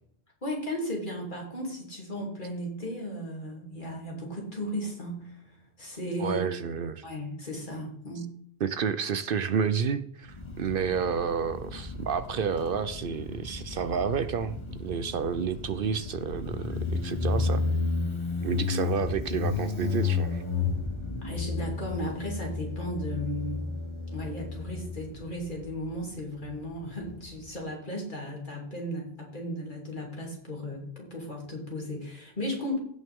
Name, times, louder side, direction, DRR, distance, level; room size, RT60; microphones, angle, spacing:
voice 1, 0.4-6.4 7.0-8.3 21.2-23.7 24.1-32.8, equal, 50° left, -2 dB, 3.1 m, -35 dB
voice 2, 6.2-7.0 8.6-17.6 18.4-20.4, right 6 dB, 65° right, 13 dB, 0.7 m, -30 dB
Motorcycle, 10.3-27.5, left 4 dB, 25° left, 1.6 m, -33 dB
16.5 x 6.2 x 3.6 m, 0.68 s
omnidirectional pair, 1.1 m